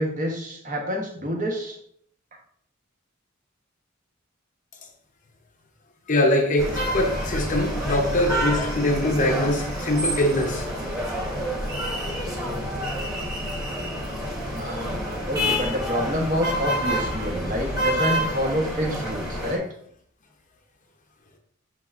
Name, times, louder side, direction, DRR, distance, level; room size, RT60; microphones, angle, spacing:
voice 1, 0.0-1.8 12.2-12.6 14.5-19.7, equal, 40° right, 0 dB, 1.1 m, -28 dB
voice 2, 6.1-10.7, left 1 dB, 40° left, 3 dB, 0.7 m, -23 dB
sound 1, 6.6-19.6, equal, 20° right, 1.3 m, -28 dB
6.6 x 3.3 x 2.4 m, 0.65 s
head